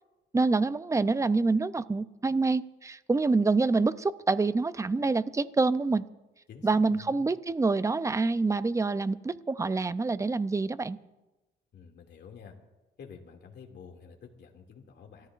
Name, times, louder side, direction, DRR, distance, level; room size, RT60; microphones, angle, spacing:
voice 1, 0.3-6.0 6.6-11.0, right 3 dB, 15° right, 15 dB, 0.5 m, -26 dB
voice 2, 6.5-7.2 11.7-12.5 13.0-15.3, left 6 dB, 60° left, 2 dB, 2.4 m, -49 dB
29.0 x 14.0 x 2.5 m, 1.1 s
cardioid pair, 90°, 20 cm